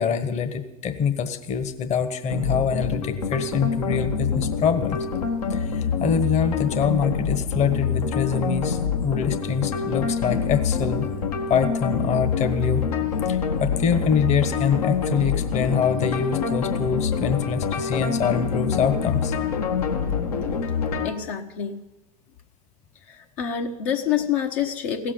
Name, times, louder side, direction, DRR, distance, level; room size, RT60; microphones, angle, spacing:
voice 1, 0.0-5.0 5.5-8.8 9.0-11.1 11.5-12.8 13.3-19.3, left 6 dB, 35° left, 9 dB, 1.4 m, -25 dB
sound 1, 2.3-21.1, left 6 dB, 70° left, 1.7 m, -26 dB
voice 2, 21.0-21.8 23.1-25.1, left 8 dB, 55° left, 3 dB, 1.2 m, -27 dB
16.5 x 7.5 x 8.9 m, 0.99 s
figure-of-eight pair, 85°, 20 cm